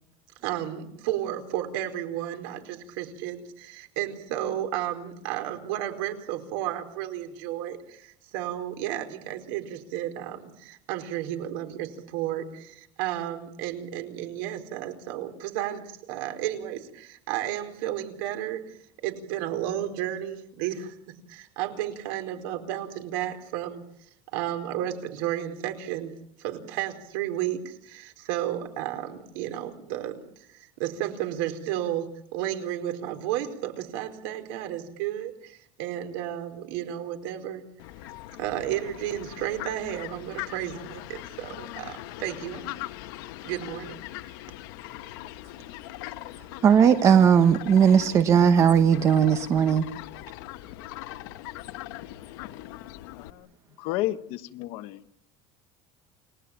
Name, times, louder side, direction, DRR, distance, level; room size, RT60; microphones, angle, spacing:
voice 1, 0.4-18.8 19.0-21.0 21.3-23.8 24.3-26.1 26.4-30.2 30.5-37.6 38.4-42.7 43.4-44.0 44.2-44.3, right 12 dB, 75° right, 4.4 m, -32 dB
Fowl, 37.8-53.3, left 16 dB, 75° left, 1.2 m, -41 dB
voice 2, 46.6-49.9, right 7 dB, 25° right, 1.1 m, -18 dB
voice 3, 53.1-53.5 53.8-55.0, left 15 dB, 55° left, 1.5 m, -32 dB
29.5 x 19.5 x 8.9 m
cardioid pair, 175°, 11 cm